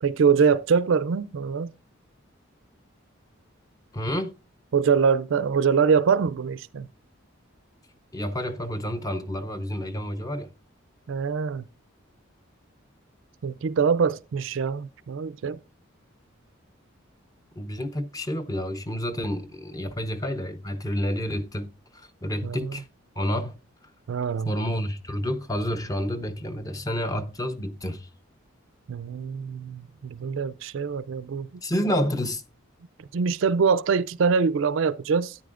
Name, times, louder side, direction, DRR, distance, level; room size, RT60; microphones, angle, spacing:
voice 1, 0.0-1.7 4.7-6.9 11.1-11.6 13.4-15.6 22.4-22.8 24.1-24.5 28.9-31.5 33.1-35.4, right 6 dB, 65° right, 0.4 m, -24 dB
voice 2, 3.9-4.3 8.1-10.5 17.6-21.7 21.9-22.8 23.2-23.5 24.5-28.1 31.6-32.4, equal, 15° left, 0.5 m, -29 dB
12.5 x 9.6 x 2.5 m
head